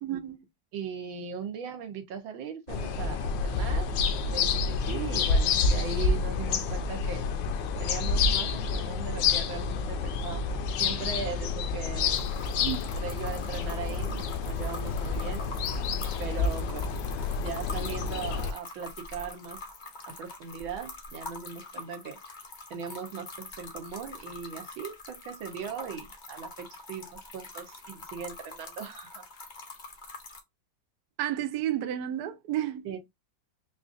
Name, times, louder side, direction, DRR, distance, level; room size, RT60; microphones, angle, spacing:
voice 1, 0.0-0.4 12.6-12.8 31.2-32.9, right 12 dB, 65° right, 1.0 m, -31 dB
voice 2, 0.7-4.0 4.3-7.2 7.8-12.2 12.8-15.4 16.2-16.8 17.4-19.6 20.1-22.2 22.7-29.2 32.8-33.0, right 6 dB, 85° right, 1.6 m, -39 dB
sound 1, 2.7-18.5, left 5 dB, 75° left, 1.3 m, -29 dB
sound 2, 12.1-30.4, left 3 dB, 45° left, 0.6 m, -45 dB
4.9 x 2.5 x 2.5 m
omnidirectional pair, 2.1 m